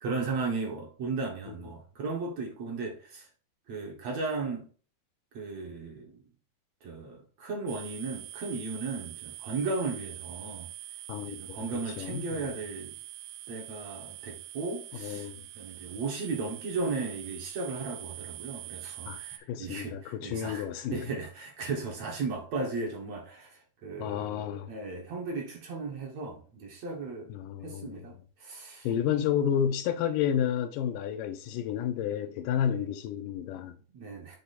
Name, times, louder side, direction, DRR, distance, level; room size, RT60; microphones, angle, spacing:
voice 1, 0.0-3.2 3.7-4.7 5.3-6.2 6.8-10.7 11.2-12.9 13.5-15.3 15.6-27.3 27.6-28.1 28.4-28.9 32.7-32.8 33.9-34.4, right 3 dB, 60° right, 2.3 m, -36 dB
sound 1, 7.7-19.4, right 15 dB, 80° right, 1.7 m, -44 dB
voice 2, 11.1-11.6 12.0-12.5 14.9-15.4 19.1-19.2 19.5-21.1 24.0-24.7 27.3-28.0 28.8-33.8, left 9 dB, 90° left, 2.3 m, -31 dB
7.9 x 2.9 x 4.1 m
omnidirectional pair, 3.8 m